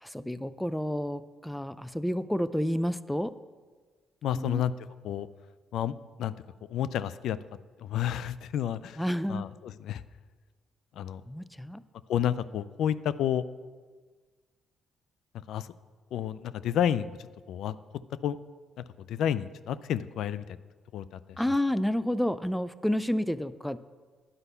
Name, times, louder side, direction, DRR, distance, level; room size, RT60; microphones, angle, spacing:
voice 1, 0.0-3.3 4.3-4.6 9.0-9.5 11.3-11.8 21.4-23.8, equal, 5° left, 15 dB, 0.4 m, -30 dB
voice 2, 4.2-4.7 5.0-5.3 5.7-5.9 6.2-6.3 6.7-7.4 7.8-9.0 9.3-10.0 11.0-11.2 12.1-13.4 15.3-15.7 16.1-17.2 17.5-17.8 18.2-18.4 18.8-20.6 20.9-21.2, left 10 dB, 80° left, 16 dB, 0.3 m, -30 dB
10.0 x 5.5 x 8.1 m, 1.4 s
cardioid pair, 90°, 0 cm